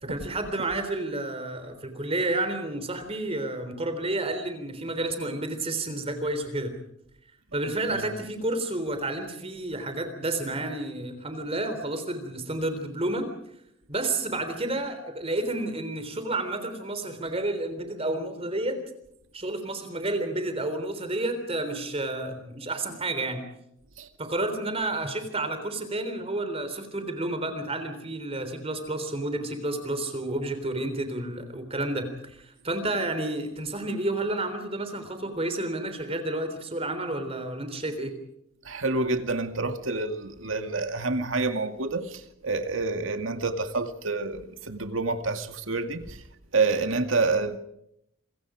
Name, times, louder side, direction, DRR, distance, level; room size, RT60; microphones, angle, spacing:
voice 1, 0.0-6.7 7.5-13.3 13.9-18.8 19.3-23.4 24.2-38.2, right 2 dB, 30° right, 3.6 m, -30 dB
voice 2, 38.6-46.2 46.5-47.6, right 3 dB, 85° right, 2.2 m, -28 dB
27.5 x 23.5 x 5.0 m
head